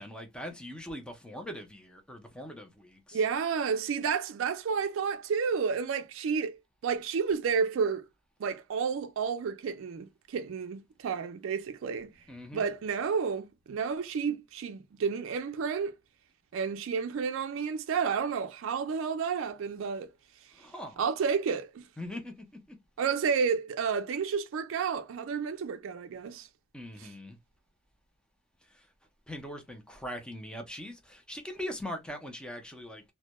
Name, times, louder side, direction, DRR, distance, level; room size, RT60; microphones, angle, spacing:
voice 1, 0.0-3.2 12.3-12.7 20.5-21.0 22.0-22.8 26.7-27.4 28.7-28.9 29.3-33.0, equal, 5° left, 0.4 m, -41 dB
voice 2, 3.1-6.6 6.8-8.1 8.4-12.1 12.5-15.9 16.5-20.1 21.0-21.8 23.0-26.5 27.0-27.1, right 6 dB, 75° right, 0.3 m, -31 dB
2.1 x 2.1 x 2.8 m
head